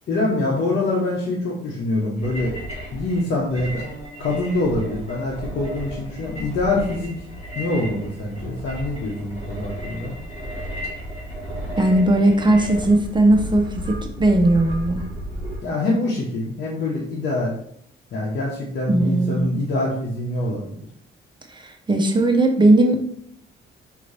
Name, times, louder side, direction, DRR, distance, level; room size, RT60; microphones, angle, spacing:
voice 1, 0.1-2.5 2.9-3.9 4.2-7.1 7.5-10.1 15.6-17.5 18.1-20.8, left 2 dB, 60° left, -4 dB, 1.0 m, -24 dB
sound 1, 2.2-15.6, equal, 35° left, 1.6 m, -33 dB
voice 2, 11.8-15.0 18.9-19.5 21.5-23.1, right 2 dB, 25° right, 4 dB, 0.6 m, -18 dB
5.1 x 2.7 x 3.3 m, 0.69 s
cardioid pair, 90°, 20 cm